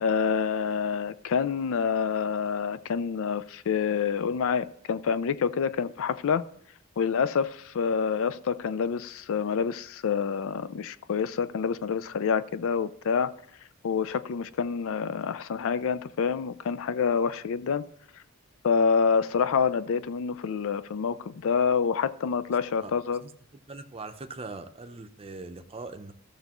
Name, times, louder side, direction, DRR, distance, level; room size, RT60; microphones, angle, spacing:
voice 1, 0.0-6.4 7.0-13.3 13.8-17.8 18.6-23.2, left 6 dB, 65° left, 0.4 m, -27 dB
voice 2, 23.7-26.1, right 3 dB, 25° right, 0.6 m, -41 dB
14.0 x 6.6 x 3.0 m
head